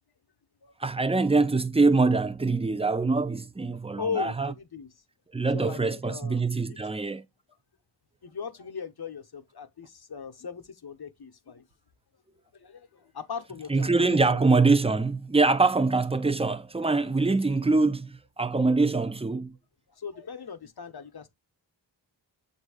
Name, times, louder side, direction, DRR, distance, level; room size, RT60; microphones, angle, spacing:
voice 1, 0.8-4.5 5.3-7.2 13.7-19.6, right 3 dB, 15° right, 0.4 m, -24 dB
voice 2, 4.0-4.9 5.5-6.4 6.7-6.9 8.2-11.6 12.5-14.4 19.9-21.3, left 6 dB, 60° left, 0.9 m, -38 dB
7.3 x 2.7 x 4.8 m
wide cardioid pair, 85°, 44 cm